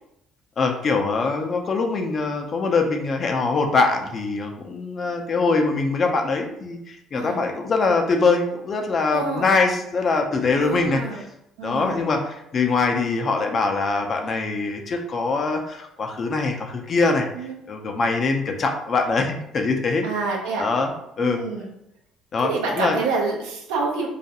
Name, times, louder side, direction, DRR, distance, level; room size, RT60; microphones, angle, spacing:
voice 1, 0.6-11.2 11.6-17.3 17.7-20.0 20.6-20.9 21.2-21.4 22.3-23.0, left 4 dB, 45° left, 3 dB, 0.4 m, -23 dB
voice 2, 7.1-7.4 9.1-9.5 10.5-11.2 11.6-12.1 17.3-17.6 20.0-20.6 21.2-21.7 22.4-24.1, right 4 dB, 90° right, -1 dB, 0.6 m, -27 dB
2.3 x 2.2 x 2.8 m, 0.81 s
supercardioid pair, 70°, 0 cm